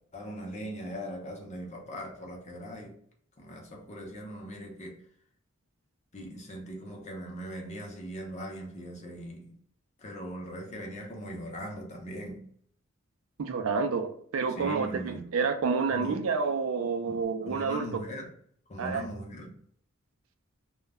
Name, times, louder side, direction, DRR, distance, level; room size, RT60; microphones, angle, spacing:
voice 1, 0.1-3.0 3.4-5.0 6.1-9.6 10.0-12.5 14.5-15.3 15.9-16.2 17.1-18.3 18.7-19.5, equal, 35° left, 0.6 m, -40 dB
voice 2, 13.4-17.9 18.8-19.0, right 5 dB, 70° right, 0.4 m, -29 dB
2.2 x 2.0 x 3.4 m
head